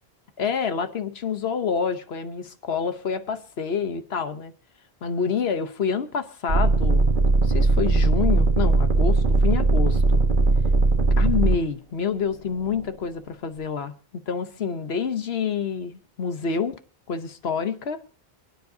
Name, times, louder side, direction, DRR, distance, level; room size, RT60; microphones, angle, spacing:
voice 1, 0.4-4.5 5.0-7.1 7.4-10.2 11.2-16.8 17.1-18.0, left 6 dB, 85° left, 1.2 m, -28 dB
sound 1, 6.5-11.6 12.3-13.0, right 3 dB, 55° right, 1.5 m, -19 dB
28.5 x 9.7 x 2.8 m
omnidirectional pair, 1.0 m